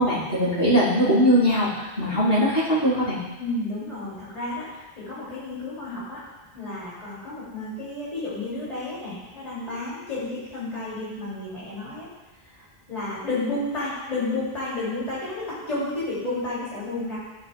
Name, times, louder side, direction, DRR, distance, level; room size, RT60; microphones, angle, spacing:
voice 1, 0.0-3.2, equal, 60° left, -9 dB, 3.7 m, -21 dB
voice 2, 3.4-6.2 6.5-12.1 12.4-17.2, left 2 dB, 40° left, -10 dB, 2.8 m, -31 dB
15.0 x 6.9 x 2.3 m, 1.1 s
omnidirectional pair, 1.1 m